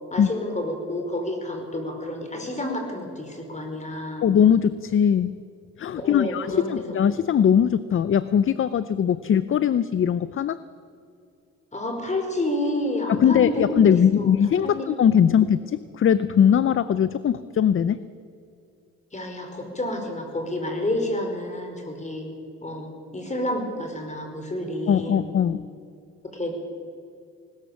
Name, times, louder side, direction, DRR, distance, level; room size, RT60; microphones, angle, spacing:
voice 1, 0.1-4.2 6.0-7.0 11.7-13.9 14.2-14.3 14.6-14.9 15.3-15.4 19.1-22.3 22.6-25.3 26.2-26.6, left 1 dB, 25° left, 4 dB, 4.9 m, -29 dB
voice 2, 4.2-5.4 5.8-10.6 13.1-18.0 24.9-25.6, left 8 dB, 45° left, 15 dB, 0.6 m, -20 dB
20.0 x 19.5 x 7.2 m, 2.5 s
cardioid pair, 90°, 30 cm